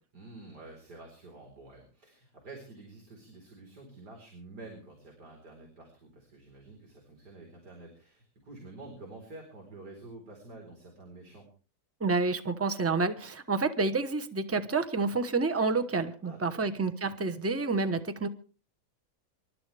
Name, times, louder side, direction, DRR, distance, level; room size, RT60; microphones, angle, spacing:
voice 1, 0.1-11.5 16.2-16.7, right 2 dB, 70° right, 0 dB, 4.9 m, -49 dB
voice 2, 12.0-18.3, right 3 dB, 10° right, 9 dB, 0.8 m, -29 dB
28.0 x 13.0 x 3.4 m, 0.38 s
omnidirectional pair, 1.8 m